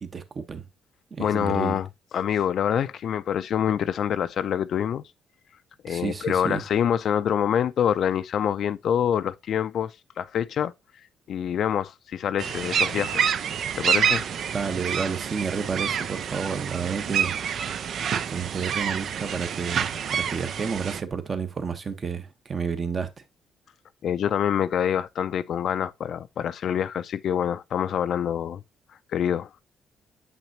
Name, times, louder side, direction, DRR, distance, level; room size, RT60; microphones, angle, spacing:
voice 1, 0.0-0.6 1.1-1.8 5.9-6.6 14.5-17.4 18.3-23.1, right 5 dB, 40° right, 1.1 m, -30 dB
voice 2, 1.2-1.9 2.1-5.0 5.8-10.7 11.3-13.3 13.8-14.2 24.0-28.6 29.1-29.6, left 9 dB, 65° left, 0.4 m, -26 dB
sound 1, 12.4-21.0, right 8 dB, 65° right, 0.5 m, -27 dB
8.1 x 6.0 x 2.8 m
cardioid pair, 90°, 0 cm